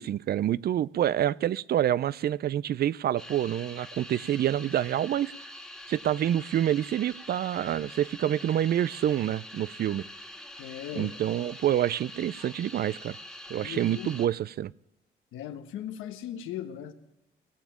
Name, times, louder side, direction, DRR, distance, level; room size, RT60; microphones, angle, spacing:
voice 1, 0.0-5.3 5.9-10.0 11.0-13.2 13.5-14.7, right 11 dB, 55° right, 22 dB, 0.4 m, -27 dB
sound 1, 3.2-14.3, left 1 dB, ahead, 1.8 m, -45 dB
voice 2, 10.6-11.1 13.6-14.2 15.3-16.9, left 10 dB, 90° left, 8 dB, 1.2 m, -38 dB
19.0 x 7.1 x 7.5 m, 0.89 s
cardioid pair, 90°, 20 cm